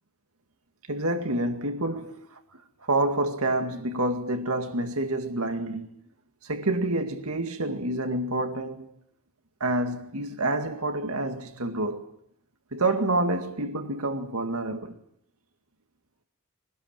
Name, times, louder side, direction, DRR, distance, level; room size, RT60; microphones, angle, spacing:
voice 1, 0.9-2.4 2.8-5.9 6.4-8.9 9.6-12.1 12.7-15.0, right 2 dB, 85° right, 2.2 m, -28 dB
24.5 x 19.5 x 9.0 m
head